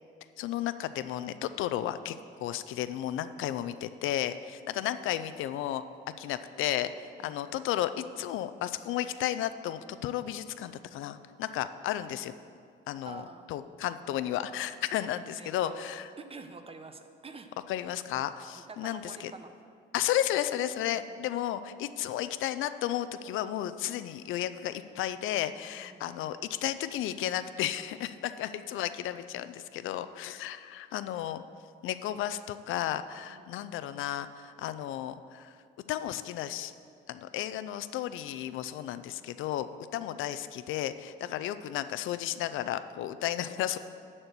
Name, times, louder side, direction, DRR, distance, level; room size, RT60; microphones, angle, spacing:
voice 1, 0.4-5.8 6.2-12.3 12.9-16.1 17.7-19.3 19.9-31.4 31.8-35.6 35.9-36.7 37.1-43.8, left 12 dB, 85° left, 12 dB, 0.5 m, -33 dB
voice 2, 7.2-7.6 13.0-13.5 15.4-17.5 18.7-19.5 20.9-21.0 24.6-24.7 25.8-26.3 33.3-33.7 40.0-40.1, right 4 dB, 30° right, 8 dB, 0.8 m, -48 dB
11.0 x 4.4 x 8.0 m, 2.3 s
cardioid pair, 90°, 20 cm